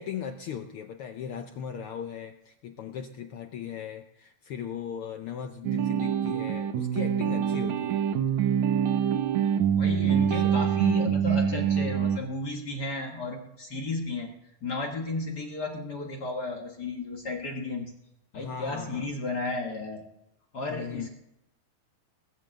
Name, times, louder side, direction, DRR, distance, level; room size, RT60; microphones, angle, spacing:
voice 1, 0.0-8.0 8.4-8.5 10.3-10.6 18.3-19.1 20.7-21.1, left 8 dB, 80° left, 6 dB, 1.2 m, -38 dB
sound 1, 5.6-12.2, right 8 dB, 80° right, 2.2 m, -25 dB
voice 2, 9.7-14.3 14.6-17.9 18.3-20.0 20.5-21.1, left 2 dB, 45° left, 2 dB, 1.6 m, -33 dB
19.5 x 7.5 x 7.7 m, 0.82 s
omnidirectional pair, 3.3 m